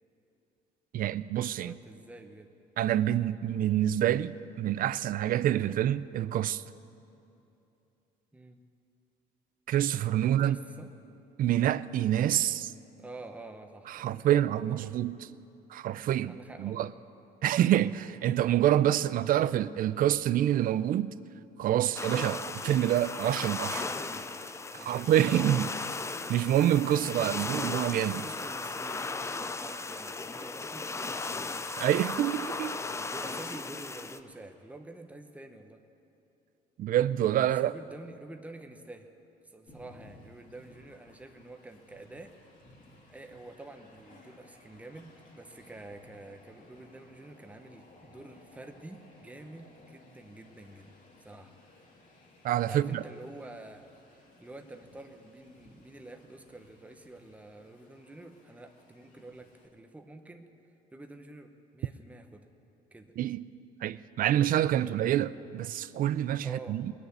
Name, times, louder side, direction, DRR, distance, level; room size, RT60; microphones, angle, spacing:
voice 1, 0.9-1.8 2.8-6.6 9.7-10.6 11.4-12.7 13.9-15.3 15.7-16.9 17.4-21.1 21.6-23.8 24.8-25.7 26.3-28.2 31.8-32.8 36.8-37.7 52.4-53.0 63.2-63.5 63.8-66.9, right 12 dB, 55° right, 0.5 m, -27 dB
voice 2, 1.6-2.5 8.3-8.6 10.2-10.9 13.0-14.4 14.8-14.9 16.3-16.9 23.8-24.3 24.7-26.0 26.9-27.6 28.1-29.1 29.4-31.5 33.0-35.8 37.4-39.1 39.4-42.4 43.1-51.5 52.7-60.5 60.9-62.5 62.9-63.1 66.4-66.8, right 2 dB, 10° right, 1.0 m, -48 dB
sound 1, 22.0-34.2, left 3 dB, 15° left, 0.5 m, -36 dB
Train, 39.7-59.7, left 2 dB, 50° left, 3.1 m, -58 dB
20.0 x 6.9 x 9.5 m
cardioid pair, 110°, 17 cm